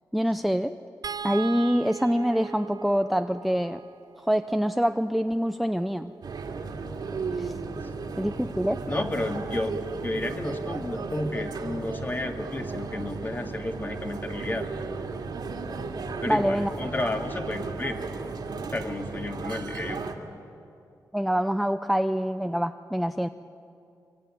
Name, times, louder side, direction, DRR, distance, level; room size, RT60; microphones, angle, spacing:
voice 1, 0.1-0.7 1.2-3.8 4.3-6.1 7.4-7.5 8.2-8.8 16.3-16.7 21.1-23.3, equal, ahead, 9 dB, 0.6 m, -25 dB
sound 1, 1.0-7.4 8.9-9.1 9.4-9.6, right 7 dB, 60° right, 0.6 m, -41 dB
sound 2, 6.2-20.1, right 4 dB, 75° right, 2.4 m, -35 dB
voice 2, 8.9-14.7 16.2-18.0 18.7-20.0, left 2 dB, 25° left, 4 dB, 2.2 m, -32 dB
24.0 x 24.0 x 9.9 m, 2.6 s
wide cardioid pair, 100°, 7 cm